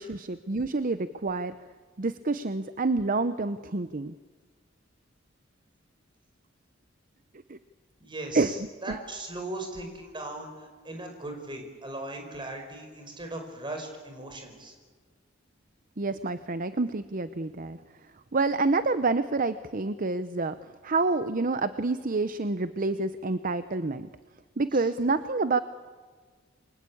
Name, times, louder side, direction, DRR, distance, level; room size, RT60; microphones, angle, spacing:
voice 1, 0.0-1.5 2.0-4.1 7.5-7.6 8.3-8.5 8.9-9.0 16.0-17.8 18.3-20.6 20.8-24.1 24.6-25.6, right 3 dB, 45° right, 12 dB, 0.8 m, -28 dB
voice 2, 8.0-14.7 24.7-24.9, right 2 dB, 25° right, 3 dB, 5.4 m, -38 dB
28.5 x 23.5 x 8.6 m, 1.5 s
head